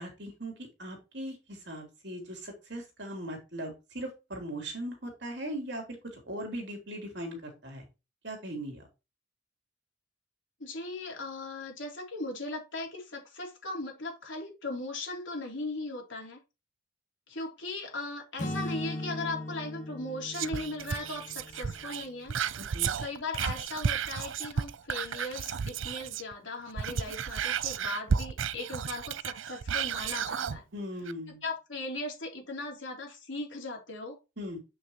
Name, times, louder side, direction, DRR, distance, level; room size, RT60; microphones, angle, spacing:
voice 1, 0.0-6.0 6.3-7.8 8.2-8.8 22.7-23.0 30.7-31.4 34.4-34.6, right 1 dB, 65° right, 3.4 m, -39 dB
voice 2, 10.6-16.4 17.3-22.4 23.0-30.6 31.4-34.2, left 2 dB, 75° left, 3.3 m, -38 dB
Acoustic guitar / Strum, 18.4-22.3, left 1 dB, 40° left, 2.1 m, -39 dB
Whispering, 20.3-26.3 26.7-30.6 31.1-31.2, right 7 dB, 90° right, 0.5 m, -33 dB
7.8 x 6.5 x 3.0 m
head